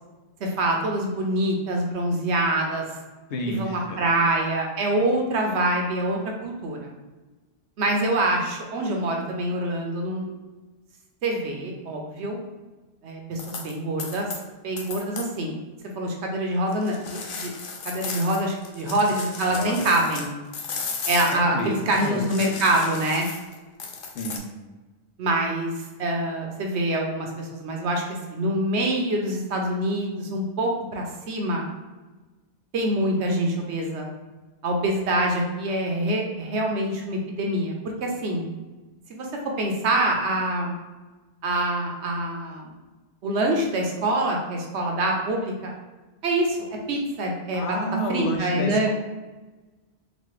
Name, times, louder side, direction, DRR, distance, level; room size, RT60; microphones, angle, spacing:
voice 1, 0.4-2.8 3.5-6.9 7.8-10.3 11.2-12.4 13.0-14.3 14.6-15.6 16.0-17.5 17.8-20.3 21.1-23.3 25.2-25.7 26.0-28.0 28.3-31.7 32.7-34.1 34.6-37.7 38.0-38.4 39.1-39.3 39.6-40.7 41.4-42.7 43.2-45.7 46.2-46.6 46.9-47.6 48.1-48.9, right 1 dB, 80° right, 1 dB, 1.0 m, -25 dB
voice 2, 3.3-4.2 19.5-19.9 21.3-22.3 24.1-24.5 47.5-48.9, equal, 90° left, 3 dB, 0.9 m, -30 dB
sound 1, 13.4-13.7 14.0-14.4 14.8-15.3 16.7-20.3 20.5-24.4, left 4 dB, 60° left, 0.6 m, -35 dB
4.1 x 2.2 x 3.1 m, 1.2 s
omnidirectional pair, 1.1 m